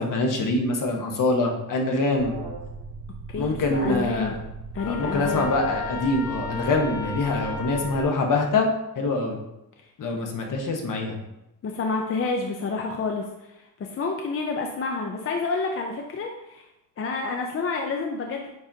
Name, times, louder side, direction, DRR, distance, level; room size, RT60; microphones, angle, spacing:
voice 1, 0.0-2.4 3.3-4.3 4.9-8.7 9.0-9.4 10.0-11.2, left 2 dB, 60° left, 2 dB, 1.2 m, -24 dB
Alarm, 2.2-8.0, right 3 dB, 90° right, 1.4 m, -38 dB
voice 2, 3.3-4.3 4.7-5.5 10.1-10.2 11.6-16.7 17.0-18.5, left 4 dB, 35° left, 2 dB, 0.6 m, -29 dB
Trumpet, 4.8-8.1, left 4 dB, 80° left, 0.9 m, -35 dB
9.3 x 3.8 x 2.7 m, 0.90 s
cardioid pair, 150°, 36 cm